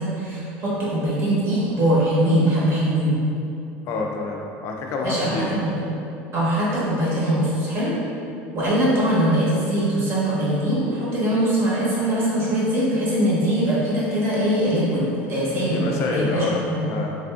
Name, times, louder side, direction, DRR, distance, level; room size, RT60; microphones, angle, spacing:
voice 1, 0.0-3.2 5.0-5.8 6.3-7.9 8.5-16.8, right 1 dB, 40° right, -8 dB, 1.1 m, -22 dB
voice 2, 3.9-5.5 15.7-17.2, left 3 dB, 50° left, 0 dB, 0.3 m, -27 dB
3.2 x 2.4 x 2.4 m, 2.6 s
supercardioid pair, 130°, 6 cm